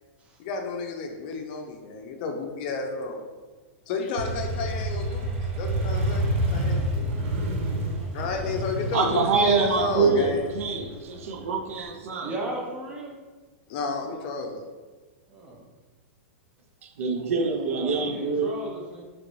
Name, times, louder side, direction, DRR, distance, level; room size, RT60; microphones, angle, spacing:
voice 1, 0.4-3.3 3.9-7.0 8.1-10.4 13.7-14.6, left 4 dB, 45° left, 3 dB, 0.5 m, -31 dB
Motorcycle, 4.2-11.8, right 1 dB, 55° right, 0.8 m, -29 dB
voice 2, 8.9-12.3 16.8-18.5, right 5 dB, 90° right, 4 dB, 0.6 m, -25 dB
voice 3, 12.2-13.2 14.0-14.2 15.3-15.6 17.7-19.0, right 2 dB, 15° right, -2 dB, 0.7 m, -36 dB
3.9 x 3.1 x 3.1 m, 1.3 s
supercardioid pair, 165°, 7 cm